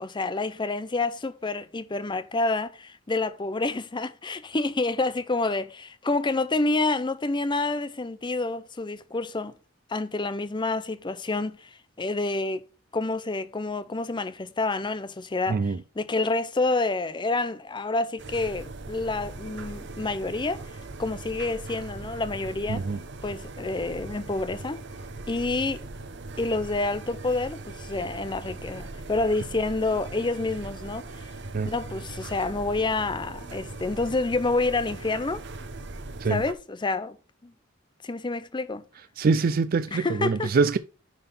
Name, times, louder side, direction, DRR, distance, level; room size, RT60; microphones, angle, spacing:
voice 1, 0.0-9.5 9.9-12.6 12.9-20.6 21.0-22.9 23.2-24.8 25.3-25.8 26.4-31.3 31.6-35.4 36.3-37.2 37.4-37.5 38.0-38.9 39.9-40.6, left 3 dB, 25° left, 0.6 m, -28 dB
sound 1, 18.2-36.5, right 2 dB, 60° right, 0.9 m, -40 dB
voice 2, 39.2-40.8, right 4 dB, 45° right, 0.4 m, -24 dB
9.7 x 3.7 x 5.4 m
head